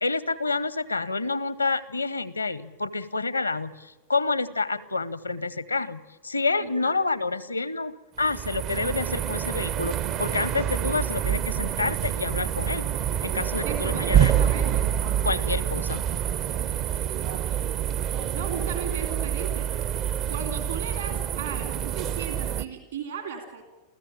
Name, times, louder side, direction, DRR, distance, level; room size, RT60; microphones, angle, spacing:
voice 1, 0.0-12.9 13.2-14.3 15.2-16.0, left 3 dB, 80° left, 19 dB, 0.8 m, -28 dB
voice 2, 6.6-7.0 13.6-15.0 18.3-20.0 20.3-23.6, right 6 dB, 65° right, 5 dB, 3.2 m, -36 dB
sound 1, 8.2-22.6, right 10 dB, 40° right, 0.7 m, -27 dB
sound 2, 9.9-11.2 11.5-15.2, right 5 dB, 85° right, 6.8 m, -42 dB
28.5 x 15.0 x 8.8 m, 1.2 s
figure-of-eight pair, 90°, 0 cm